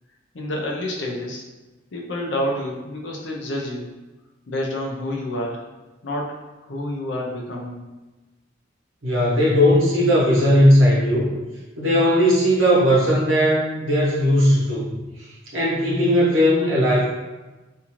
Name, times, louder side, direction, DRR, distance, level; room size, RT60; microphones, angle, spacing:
voice 1, 0.3-1.4 1.9-3.9 4.5-5.6 6.0-6.4 6.7-7.8, left 1 dB, 60° left, -1 dB, 0.5 m, -28 dB
voice 2, 9.0-11.3 11.8-14.9 15.2-17.0, equal, 75° right, -6 dB, 1.0 m, -18 dB
2.6 x 2.4 x 3.0 m, 1.1 s
head